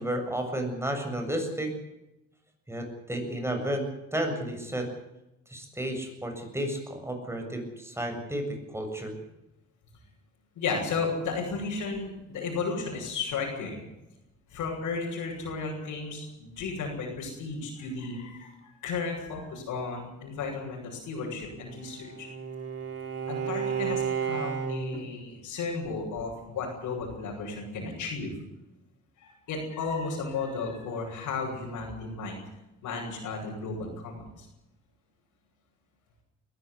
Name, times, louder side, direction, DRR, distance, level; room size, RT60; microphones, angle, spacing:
voice 1, 0.0-1.7 2.7-3.8 4.1-4.9 5.5-9.1, right 1 dB, 10° right, 5 dB, 7.3 m, -32 dB
voice 2, 10.6-13.8 14.5-22.3 23.3-28.3 29.2-32.3 32.8-34.5, left 4 dB, 85° left, -5 dB, 7.8 m, -34 dB
Bowed string instrument, 21.5-25.1, right 7 dB, 50° right, 6.0 m, -32 dB
21.5 x 14.5 x 9.9 m, 0.91 s
cardioid pair, 90°, 30 cm